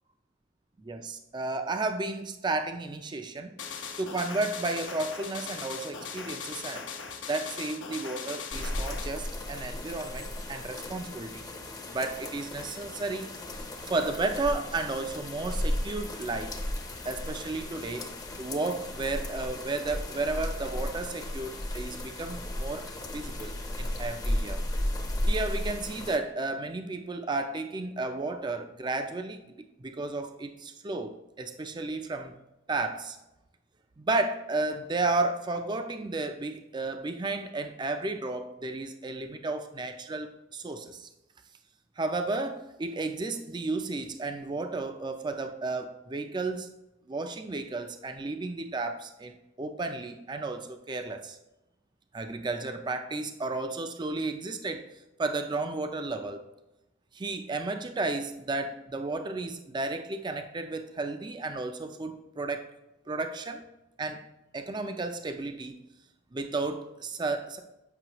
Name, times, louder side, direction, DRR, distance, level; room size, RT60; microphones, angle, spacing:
voice 1, 0.8-3.5 4.0-6.9 7.3-11.5 11.9-13.3 13.9-16.6 17.0-18.1 18.4-24.6 25.3-32.3 32.7-33.2 34.0-41.1 42.0-46.7 47.1-51.4 52.1-54.9 55.2-56.4 57.1-62.7 63.1-63.6 64.0-64.2 64.5-65.8 66.3-67.6, right 3 dB, 25° right, 7 dB, 0.4 m, -33 dB
sound 1, 3.6-9.1, left 6 dB, 85° left, 0.8 m, -39 dB
sound 2, 8.5-26.2, left 1 dB, 20° left, 0.6 m, -35 dB
7.8 x 5.4 x 2.9 m, 0.93 s
head